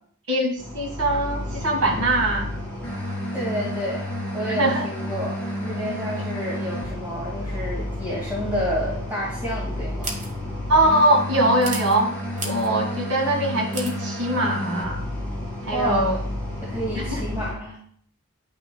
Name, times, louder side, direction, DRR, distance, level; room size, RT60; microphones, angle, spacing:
voice 1, 0.3-2.5 4.5-4.9 10.7-12.2 12.4-15.1 15.6-16.2 16.9-17.2, right 1 dB, 85° right, 2 dB, 1.8 m, -22 dB
sound 1, 0.6-17.5, left 1 dB, 10° left, 2.7 m, -31 dB
voice 2, 3.3-4.0 4.3-10.2 15.7-16.2 16.6-17.8, equal, 10° right, -8 dB, 2.0 m, -29 dB
sound 2, 10.0-10.3 11.6-12.0 12.4-12.7 13.7-14.0, right 3 dB, 35° right, 1.3 m, -32 dB
10.5 x 6.0 x 2.3 m, 0.62 s
head